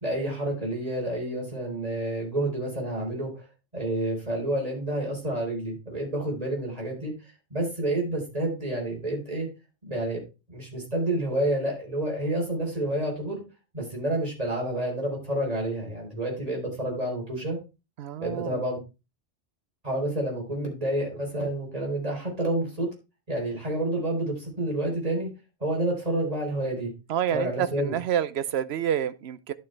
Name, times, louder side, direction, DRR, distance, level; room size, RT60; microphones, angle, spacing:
voice 1, 0.0-3.4 3.7-7.1 7.5-9.5 9.9-10.2 10.5-13.4 13.7-17.6 18.2-18.8 19.8-22.9 23.3-25.3 25.6-26.9 27.3-27.9, right 1 dB, 35° right, 4.2 m, -29 dB
voice 2, 18.0-18.6 27.1-29.5, right 10 dB, 70° right, 0.9 m, -28 dB
11.5 x 6.8 x 3.3 m
omnidirectional pair, 1.2 m